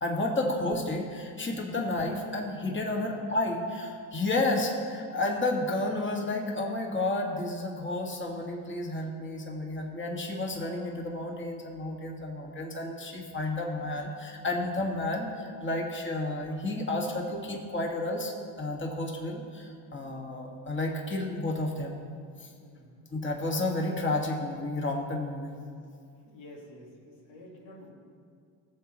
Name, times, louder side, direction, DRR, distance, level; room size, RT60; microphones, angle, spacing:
voice 1, 0.0-22.0 22.4-22.5 23.1-25.6, left 2 dB, 25° left, 0 dB, 1.8 m, -31 dB
voice 2, 22.6-23.1 26.3-27.9, left 1 dB, 85° left, -2 dB, 1.9 m, -50 dB
16.5 x 7.4 x 3.1 m, 2.2 s
supercardioid pair, 65°, 46 cm